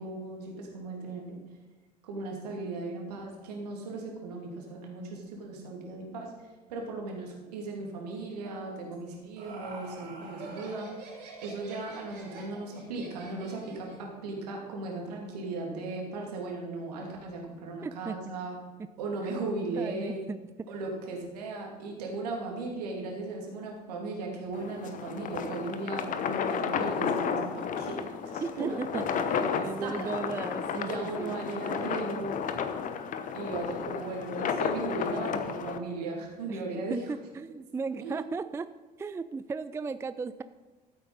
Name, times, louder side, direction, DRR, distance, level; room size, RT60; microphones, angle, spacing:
voice 1, 0.0-1.4 2.0-10.9 11.4-18.6 19.0-20.3 20.7-30.1 30.7-32.4 33.3-37.0 38.0-38.2, right 3 dB, 70° right, 0 dB, 2.6 m, -37 dB
Laughter, 8.9-14.1, right 3 dB, 55° right, 3.7 m, -46 dB
voice 2, 17.8-18.2 19.8-20.4 28.4-29.2 29.6-31.5 36.5-36.6 36.9-38.7 39.0-40.4, right 4 dB, 15° right, 13 dB, 0.4 m, -36 dB
sound 1, 24.5-35.8, left 7 dB, 40° left, 1.0 m, -32 dB
14.0 x 8.3 x 4.1 m, 1.3 s
figure-of-eight pair, 65°, 21 cm